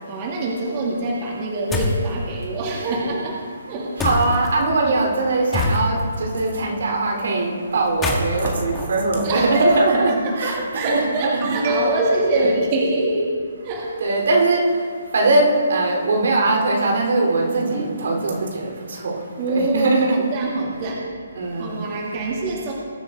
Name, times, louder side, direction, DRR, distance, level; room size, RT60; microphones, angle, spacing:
voice 1, 0.1-3.4 3.7-3.9 4.8-4.9 9.2-9.8 10.2-13.3 13.6-13.9 19.4-21.0 21.6-22.7, right 2 dB, 35° right, -4 dB, 2.6 m, -24 dB
sound 1, 1.7-2.1 4.0-4.5 5.5-6.2 7.8-9.8, left 2 dB, 10° left, 1.9 m, -25 dB
voice 2, 4.0-11.4 12.3-12.6 14.0-14.6 15.1-18.7 19.0-19.2 19.5-20.2 21.4-21.8, right 2 dB, 65° right, 0 dB, 3.5 m, -20 dB
21.0 x 9.5 x 3.8 m, 2.1 s
hypercardioid pair, 150°, 0 cm